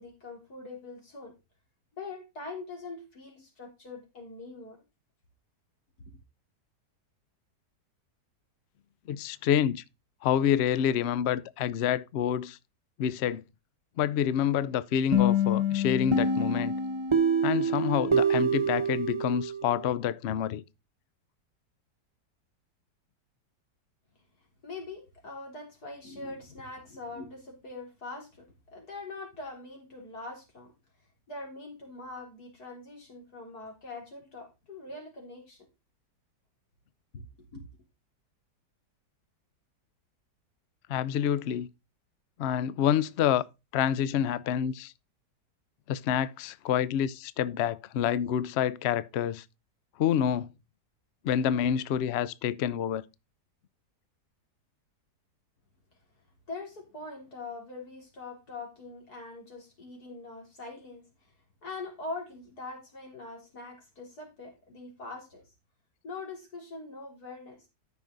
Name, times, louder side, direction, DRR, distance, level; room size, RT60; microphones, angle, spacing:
voice 1, 0.0-1.4 2.0-4.8 24.6-30.7 31.3-35.7 37.1-37.2 37.5-37.6 56.5-61.3 61.6-65.4 66.0-67.7, left 3 dB, 60° left, 4.1 m, -43 dB
voice 2, 9.1-9.8 10.2-12.6 13.0-13.4 14.0-16.8 17.4-20.6 40.9-41.7 42.4-43.4 43.7-44.9 45.9-49.4 50.0-50.5 51.2-53.0, left 9 dB, 80° left, 0.5 m, -27 dB
sound 1, 15.1-19.8, right 1 dB, 20° right, 1.0 m, -26 dB
13.5 x 6.0 x 3.9 m
omnidirectional pair, 1.9 m